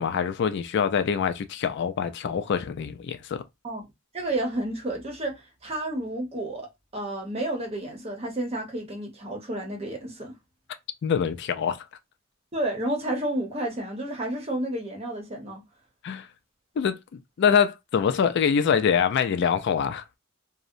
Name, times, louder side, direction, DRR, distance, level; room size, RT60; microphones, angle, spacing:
voice 1, 0.0-3.4 11.0-11.8 16.0-16.3 16.8-20.0, left 7 dB, 60° left, 0.3 m, -24 dB
voice 2, 4.1-10.3 12.5-15.6, right 1 dB, 30° right, 0.8 m, -31 dB
2.7 x 2.0 x 2.5 m
head